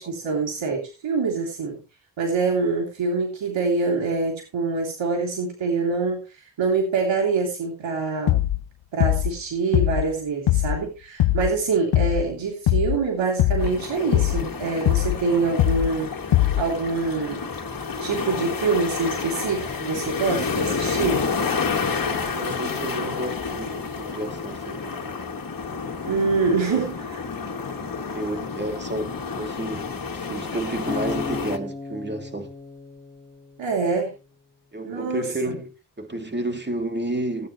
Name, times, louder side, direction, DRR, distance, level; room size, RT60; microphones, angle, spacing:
voice 1, 0.0-1.8 2.2-8.4 8.9-16.1 16.6-17.5 18.0-21.2 26.1-27.2 33.6-34.1 34.8-35.6, right 4 dB, 80° right, 3.1 m, -25 dB
sound 1, 8.3-8.6 9.0-9.4 9.7-10.1 10.5-10.8 11.2-11.6 11.9-12.3 12.7-13.0 13.4-13.8 14.1-14.5 14.9-15.2 15.6-16.0 16.3-16.7, left 14 dB, 80° left, 0.8 m, -21 dB
sound 2, 13.6-31.6, left 5 dB, 50° left, 2.3 m, -30 dB
voice 2, 22.2-25.2 26.4-26.8 28.1-29.9 30.1-32.5 34.7-37.5, right 1 dB, 25° right, 2.7 m, -31 dB
Acoustic guitar, 30.9-34.1, left 3 dB, 20° left, 2.8 m, -36 dB
17.5 x 9.3 x 3.1 m
cardioid pair, 70°, 44 cm